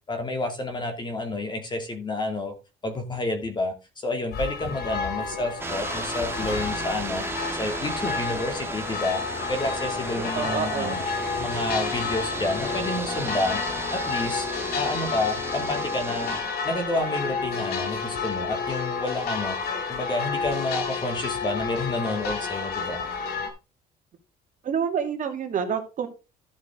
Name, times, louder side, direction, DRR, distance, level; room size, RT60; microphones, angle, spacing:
voice 1, 0.1-2.5 2.8-7.2 7.5-9.2 9.5-11.0 11.4-13.6 13.9-16.4 16.6-19.6 19.9-23.0, left 2 dB, 25° left, 5 dB, 2.5 m, -29 dB
sound 1, 4.3-23.5, left 5 dB, 65° left, 2.5 m, -30 dB
sound 2, 5.6-16.4, right 2 dB, 15° right, 1.6 m, -35 dB
voice 2, 10.2-11.0 24.6-26.1, right 7 dB, 50° right, 4 dB, 2.3 m, -28 dB
12.5 x 6.5 x 3.8 m, 0.28 s
cardioid pair, 110°, 17 cm